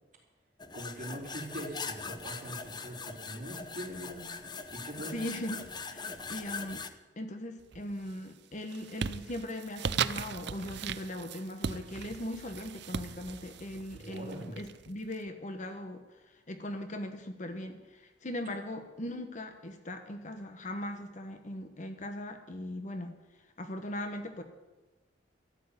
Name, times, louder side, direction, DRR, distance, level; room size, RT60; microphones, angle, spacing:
sound 1, 0.6-6.9, left 4 dB, 25° left, 0.7 m, -41 dB
voice 1, 0.7-4.3 4.7-5.2 14.0-14.6, right 1 dB, 45° right, -3 dB, 4.0 m, -42 dB
voice 2, 5.1-5.6 5.9-6.8 7.2-16.0 16.5-23.1 23.6-24.4, left 1 dB, 45° left, 7 dB, 1.2 m, -39 dB
sound 2, 7.6-8.1 8.5-15.1, right 7 dB, 65° right, 0.5 m, -38 dB
13.5 x 7.6 x 9.5 m, 1.1 s
head